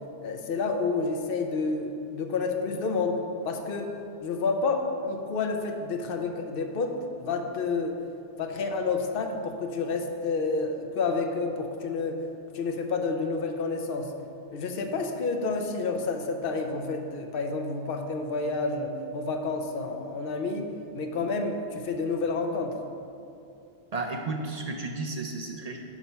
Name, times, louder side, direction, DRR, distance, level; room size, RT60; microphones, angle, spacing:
voice 1, 0.2-3.2 3.4-3.9 4.2-8.0 8.4-12.2 12.5-14.1 14.5-22.8, left 4 dB, 60° left, 4 dB, 0.7 m, -29 dB
voice 2, 23.9-25.8, right 3 dB, 60° right, 2 dB, 0.4 m, -33 dB
6.0 x 4.2 x 5.6 m, 2.6 s
omnidirectional pair, 1.2 m